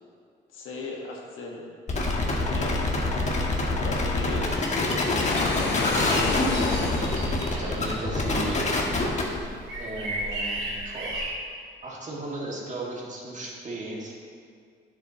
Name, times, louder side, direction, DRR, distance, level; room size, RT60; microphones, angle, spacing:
voice 1, 0.5-1.7 2.1-2.8 3.8-5.8, left 3 dB, 85° left, -1 dB, 1.4 m, -37 dB
sound 1, 1.9-9.4, left 2 dB, 35° left, 1.3 m, -26 dB
Waves surf, 4.2-7.7, left 4 dB, 60° left, 1.0 m, -29 dB
sound 2, 5.8-11.3, right 1 dB, 85° right, 1.6 m, -34 dB
voice 2, 7.5-8.6 9.8-11.2 11.8-14.1, right 2 dB, 40° right, -3 dB, 1.9 m, -35 dB
9.8 x 7.5 x 2.9 m, 2.1 s
cardioid pair, 90°, 20 cm